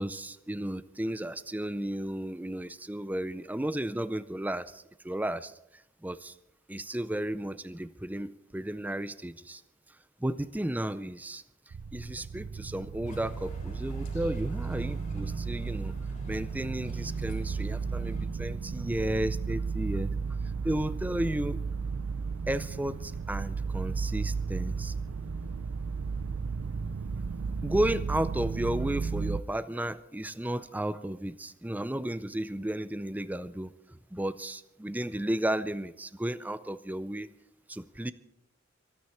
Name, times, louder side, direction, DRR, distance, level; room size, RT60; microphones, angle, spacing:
voice 1, 0.0-5.5 6.0-6.3 6.7-9.6 10.2-11.4 11.9-15.9 16.3-20.1 20.6-21.6 22.5-25.0 27.6-37.3 37.7-38.1, right 1 dB, 10° right, 15 dB, 0.5 m, -33 dB
sound 1, 11.7-29.4, right 5 dB, 80° right, 0.5 m, -34 dB
sound 2, 13.1-18.3, equal, 35° left, 3.8 m, -50 dB
25.5 x 9.6 x 4.4 m, 0.81 s
head